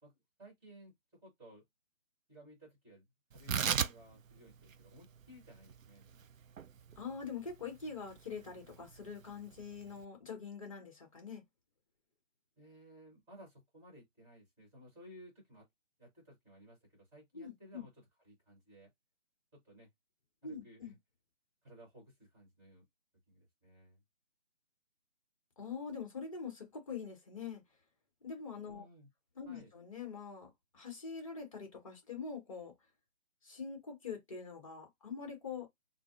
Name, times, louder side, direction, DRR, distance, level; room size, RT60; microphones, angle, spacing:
voice 1, 0.0-0.9 1.2-1.6 2.3-3.0 3.3-6.2 12.6-15.7 16.0-17.9 18.2-18.9 19.5-19.9 20.4-21.0 21.6-22.8 23.3-24.0 28.7-29.1 29.4-29.7, equal, 5° right, 1.3 m, -57 dB
Tearing, 3.3-10.0, right 7 dB, 80° right, 0.5 m, -39 dB
voice 2, 7.0-11.4 17.3-17.8 20.4-20.9 25.6-27.6 28.2-28.8 29.4-32.7 33.4-35.7, left 5 dB, 25° left, 1.1 m, -44 dB
3.8 x 2.1 x 2.5 m
figure-of-eight pair, 155°, 39 cm